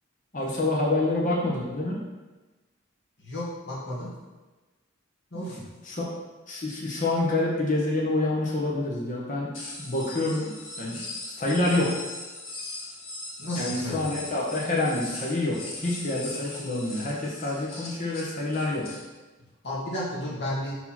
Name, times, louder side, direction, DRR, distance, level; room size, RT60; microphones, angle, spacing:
voice 1, 0.3-2.0 5.3-5.4 5.8-6.0 6.5-10.5 10.8-11.0 11.4-12.0 13.5-18.9, left 2 dB, 40° left, -5 dB, 1.1 m, -27 dB
voice 2, 3.2-4.1 5.3-5.7 13.4-14.2 19.6-20.8, left 1 dB, 55° left, -7 dB, 2.0 m, -33 dB
sound 1, 9.5-19.0, left 2 dB, 70° left, 1.7 m, -40 dB
4.7 x 3.9 x 5.7 m, 1.2 s
head